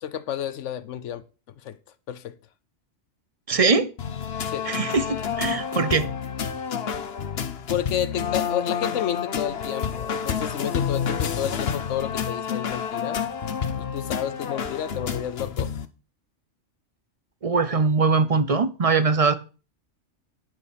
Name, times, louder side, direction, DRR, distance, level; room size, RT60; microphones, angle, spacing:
voice 1, 0.0-1.2 1.6-1.8 2.1-2.3 4.4-4.7 7.7-13.2 13.8-15.7, left 10 dB, 80° left, 1.0 m, -31 dB
voice 2, 3.5-3.9 4.7-6.1 17.4-19.3, right 4 dB, 40° right, 0.6 m, -21 dB
sound 1, 4.0-15.9, left 7 dB, 60° left, 1.1 m, -29 dB
9.8 x 6.9 x 5.2 m
omnidirectional pair, 1.2 m